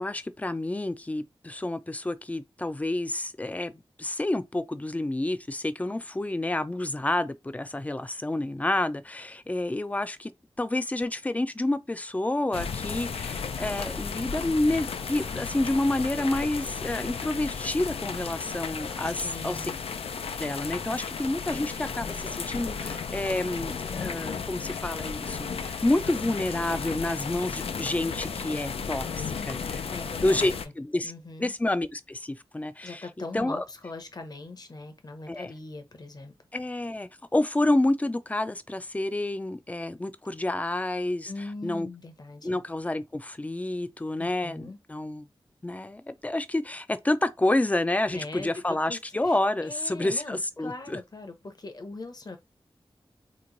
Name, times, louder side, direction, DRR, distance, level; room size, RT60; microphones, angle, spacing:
voice 1, 0.0-3.7 4.0-10.3 10.6-19.7 20.4-29.8 30.2-31.1 31.4-33.1 33.3-33.6 35.3-35.5 36.5-41.3 41.6-41.9 42.4-45.3 45.6-51.0, left 1 dB, 15° left, 0.3 m, -29 dB
sound 1, 12.5-30.7, left 6 dB, 90° left, 0.4 m, -34 dB
voice 2, 19.0-19.8 21.4-21.7 29.9-30.5 31.0-31.5 32.8-36.3 41.3-42.6 44.2-44.8 48.1-52.4, left 2 dB, 45° left, 0.8 m, -41 dB
3.0 x 2.2 x 3.8 m
wide cardioid pair, 85°, 10 cm